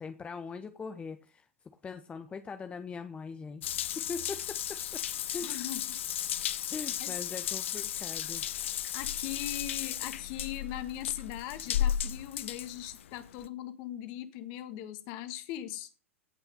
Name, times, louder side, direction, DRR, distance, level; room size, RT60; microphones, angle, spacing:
voice 1, 0.0-1.5 1.8-5.5 6.7-8.4, left 5 dB, 15° left, 0.8 m, -41 dB
Water tap faucet / Bathtub (filling or washing) / Drip, 3.6-13.5, left 10 dB, 60° left, 0.7 m, -34 dB
voice 2, 5.4-6.0 7.0-7.2 8.9-15.9, left 12 dB, 45° left, 1.8 m, -39 dB
17.0 x 5.9 x 5.3 m
figure-of-eight pair, 95°, 7 cm